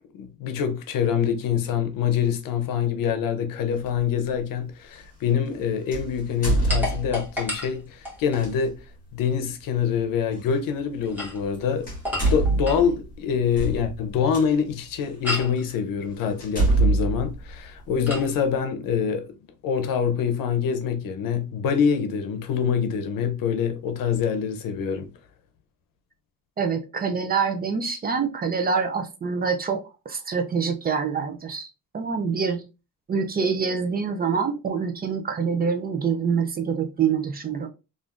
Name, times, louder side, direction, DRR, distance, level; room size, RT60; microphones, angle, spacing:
voice 1, 0.1-8.8 9.1-11.9 12.2-19.2 19.6-25.1, left 7 dB, 80° left, 0.7 m, -25 dB
sound 1, 3.8-4.0 5.9-7.4 8.3-8.5 10.4-10.5 11.4-11.6 11.8-14.4 15.1-15.2 15.7-15.8 16.4-18.2, right 2 dB, 25° left, 1.3 m, -25 dB
sound 2, 6.7-8.5 10.9-12.9 15.2-15.6 18.1-18.3, left 1 dB, 5° right, 1.3 m, -32 dB
voice 2, 26.6-29.8 30.1-31.7 31.9-32.7 33.1-37.7, right 6 dB, 30° right, 0.4 m, -25 dB
3.4 x 2.5 x 2.4 m
cardioid pair, 135°, 33 cm